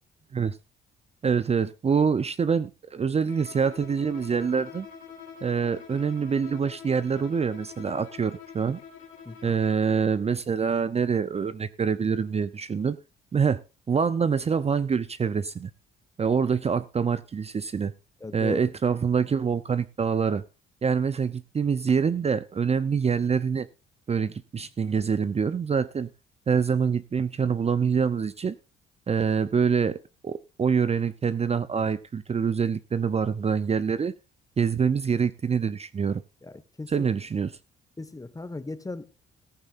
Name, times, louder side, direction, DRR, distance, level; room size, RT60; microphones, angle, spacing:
voice 1, 1.2-4.9 5.4-8.8 9.4-13.0 13.3-13.6 13.9-15.7 16.2-17.9 18.3-20.4 20.8-23.7 24.1-26.1 26.5-28.6 29.1-30.0 30.2-34.1 34.6-36.2 36.9-37.5, right 6 dB, 30° right, 0.6 m, -25 dB
Bowed string instrument, 3.3-9.9, left 6 dB, 90° left, 3.5 m, -45 dB
voice 2, 18.2-18.6 36.4-37.1 38.0-39.0, left 2 dB, 15° left, 1.5 m, -37 dB
15.0 x 14.0 x 2.5 m
cardioid pair, 90°, 20 cm